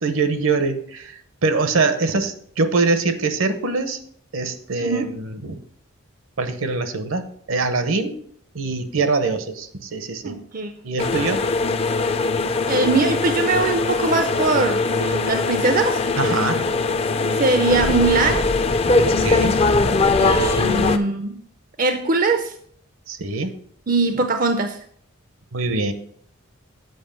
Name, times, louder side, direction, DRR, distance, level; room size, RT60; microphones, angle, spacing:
voice 1, 0.0-4.0 4.3-5.6 6.4-8.2 8.5-10.4 10.8-11.4 16.2-16.7 19.0-19.7 23.1-23.5 25.5-25.9, right 3 dB, 70° right, 10 dB, 0.8 m, -23 dB
voice 2, 4.8-5.1 10.2-10.8 12.7-16.0 17.4-18.5 20.2-21.4 21.8-22.5 23.9-24.8, right 3 dB, 40° right, 7 dB, 0.4 m, -21 dB
sound 1, 11.0-21.0, left 3 dB, 25° left, 0.4 m, -21 dB
7.9 x 5.2 x 5.2 m, 0.63 s
head